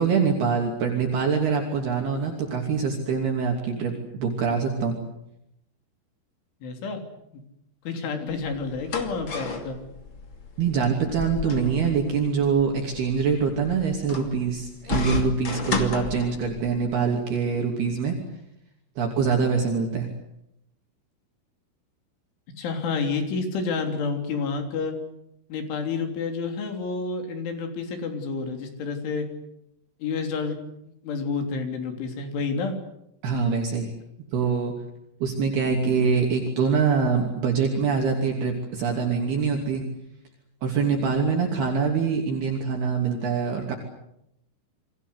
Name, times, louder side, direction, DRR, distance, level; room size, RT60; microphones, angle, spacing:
voice 1, 0.0-5.0 10.6-18.1 19.0-20.1 33.2-33.9 34.3-34.7 35.2-39.8 40.6-43.7, right 5 dB, 55° right, 1 dB, 4.6 m, -24 dB
voice 2, 6.6-7.0 7.9-9.8 22.6-25.0 25.5-29.3 30.0-30.6 30.8-32.8, left 4 dB, 75° left, 5 dB, 5.7 m, -29 dB
sound 1, 8.3-16.8, left 3 dB, 35° left, 2.4 m, -33 dB
29.0 x 24.0 x 8.2 m, 0.80 s
omnidirectional pair, 5.6 m